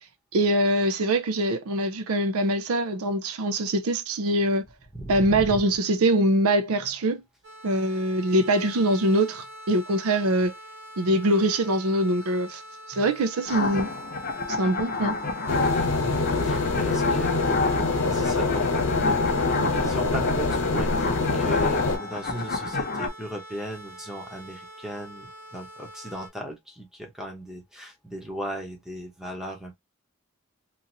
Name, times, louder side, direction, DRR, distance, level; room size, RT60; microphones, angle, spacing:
voice 1, 0.3-4.6 5.1-7.2 7.6-10.5 11.0-12.6 12.9-13.9 14.6-15.2, right 1 dB, 75° right, 0.5 m, -23 dB
voice 2, 4.9-5.6 15.9-17.4 18.1-18.7 19.0-29.7, right 1 dB, ahead, 0.8 m, -37 dB
sound 1, 7.4-26.3, equal, 50° right, 1.2 m, -44 dB
sound 2, 13.4-23.1, left 3 dB, 40° left, 0.7 m, -29 dB
sound 3, 15.5-22.0, left 3 dB, 70° left, 1.0 m, -25 dB
2.9 x 2.6 x 2.6 m
head